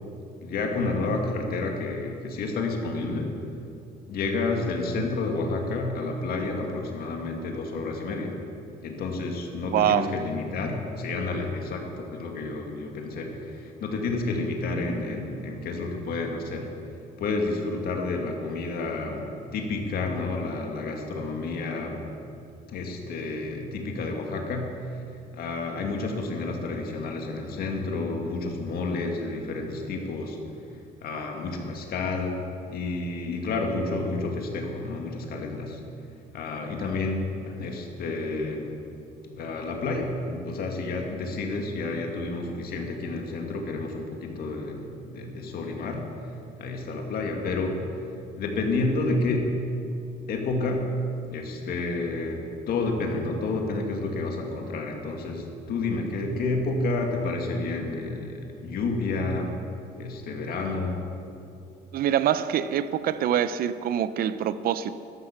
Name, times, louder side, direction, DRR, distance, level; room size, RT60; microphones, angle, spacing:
voice 1, 0.4-3.5 4.1-8.4 8.8-16.8 17.2-22.1 22.7-30.4 30.7-35.8 36.3-38.8 39.3-49.7 50.3-59.6 60.0-61.0, left 3 dB, 65° left, 2.1 m, -30 dB
voice 2, 9.7-10.1 61.9-65.0, right 10 dB, 60° right, 0.6 m, -25 dB
13.0 x 11.0 x 5.8 m
cardioid pair, 110°, 17 cm